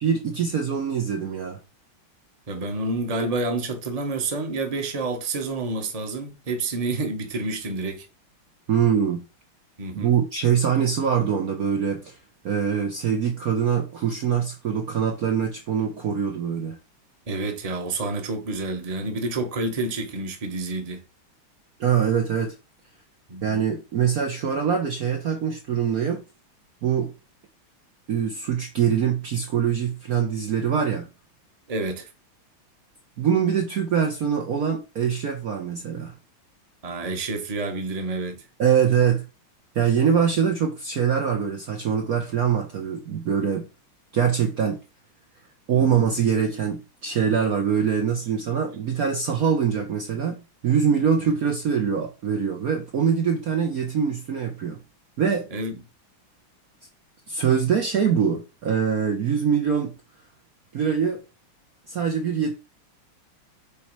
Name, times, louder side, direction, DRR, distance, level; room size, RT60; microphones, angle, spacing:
voice 1, 0.0-1.6 8.7-9.3 10.0-12.2 12.4-16.8 21.8-22.5 23.4-26.2 26.8-27.1 28.1-31.1 33.2-36.1 38.6-39.3 39.7-43.7 44.1-44.8 45.7-54.8 55.2-55.5 57.3-59.9 60.7-61.2 61.9-62.5, right 7 dB, 55° right, 1.1 m, -23 dB
voice 2, 2.5-8.1 9.8-10.1 17.3-21.0 23.3-23.6 31.7-32.1 36.8-38.5 45.7-45.9 55.5-55.8, right 2 dB, 20° right, 1.0 m, -29 dB
8.5 x 3.1 x 4.7 m
omnidirectional pair, 2.3 m